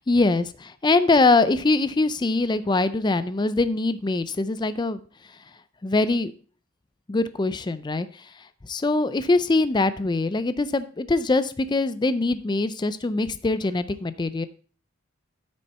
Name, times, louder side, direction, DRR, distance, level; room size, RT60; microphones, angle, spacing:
voice 1, 0.1-5.0 5.8-6.3 7.1-8.3 8.7-14.5, left 3 dB, 20° left, 13 dB, 0.4 m, -23 dB
8.8 x 6.4 x 4.2 m, 0.40 s
head